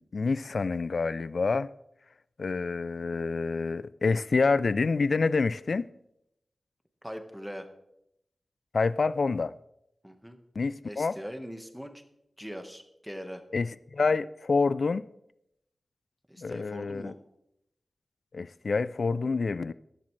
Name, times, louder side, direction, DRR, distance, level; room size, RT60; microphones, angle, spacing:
voice 1, 0.0-1.7 2.4-5.9 8.7-9.5 10.6-11.1 13.5-15.0 16.4-17.1 18.3-19.7, left 4 dB, 70° left, 0.3 m, -27 dB
voice 2, 7.0-7.7 10.0-10.4 10.8-12.0 12.4-13.4 16.3-17.1, equal, ahead, 1.4 m, -41 dB
15.0 x 11.5 x 3.3 m
wide cardioid pair, 70°, 0 cm